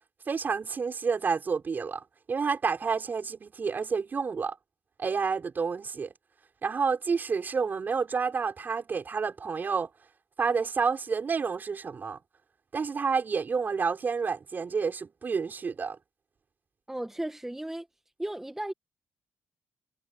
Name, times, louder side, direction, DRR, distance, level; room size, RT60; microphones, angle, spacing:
voice 1, 0.3-2.0 2.3-4.5 5.0-6.1 6.6-9.9 10.4-12.2 12.7-16.0, right 5 dB, 40° right, 6.4 m, -29 dB
voice 2, 16.9-17.9 18.2-18.7, right 1 dB, 5° right, 1.9 m, -35 dB
cardioid pair, 105°, 5 cm